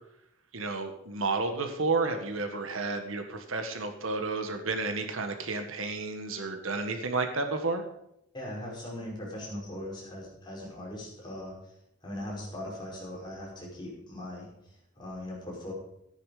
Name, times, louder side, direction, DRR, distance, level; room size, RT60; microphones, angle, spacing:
voice 1, 0.5-7.8, right 3 dB, 75° right, 6 dB, 1.6 m, -31 dB
voice 2, 8.3-11.7 12.0-15.7, left 1 dB, 20° left, -4 dB, 5.4 m, -40 dB
14.5 x 10.0 x 5.0 m, 0.77 s
head